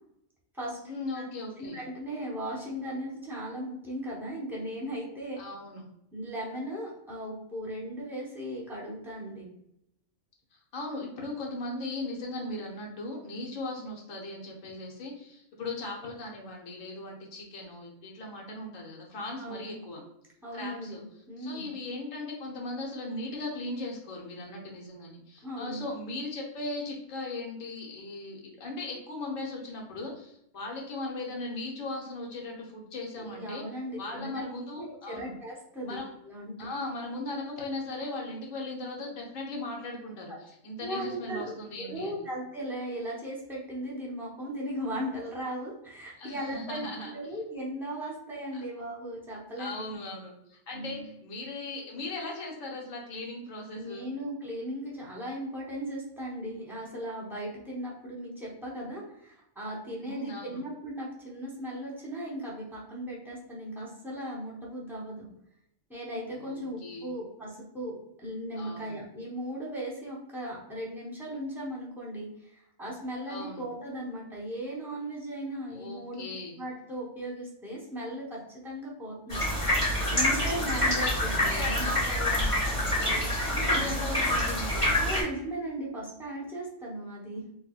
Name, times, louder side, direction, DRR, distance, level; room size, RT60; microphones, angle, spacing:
voice 1, 0.8-1.8 5.4-5.9 10.5-20.0 20.5-21.0 21.4-33.6 34.0-35.3 35.8-36.1 36.6-42.1 46.2-47.1 49.6-54.1 60.0-60.6 66.3-67.1 68.6-69.0 73.3-73.7 75.7-76.6 80.4-84.9, left 2 dB, 85° left, -1 dB, 1.2 m, -38 dB
voice 2, 1.6-5.4 6.1-9.5 19.4-19.7 20.4-21.7 25.4-25.8 33.1-34.4 34.8-36.7 40.8-50.0 50.7-51.0 53.8-65.3 65.9-76.2 76.6-79.5 80.1-82.0 83.5-83.9 85.0-87.4, right 1 dB, ahead, -5 dB, 0.8 m, -37 dB
sound 1, 79.3-85.2, left 1 dB, 25° left, 1.6 m, -27 dB
4.1 x 2.2 x 2.4 m, 0.77 s
omnidirectional pair, 1.3 m